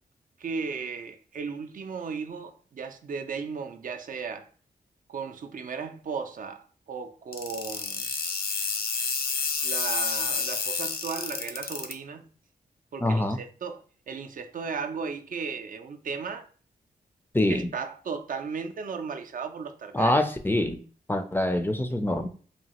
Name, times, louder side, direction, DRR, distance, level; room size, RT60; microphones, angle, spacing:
voice 1, 0.4-4.5 5.1-8.0 9.6-12.3 12.9-16.5 17.5-20.2, right 5 dB, 60° right, 0.4 m, -35 dB
sound 1, 7.3-11.9, left 5 dB, 70° left, 0.5 m, -29 dB
voice 2, 13.0-13.4 17.3-17.7 19.9-20.8 21.1-22.3, left 1 dB, 15° left, 0.4 m, -25 dB
2.8 x 2.3 x 2.9 m
cardioid pair, 65°, 16 cm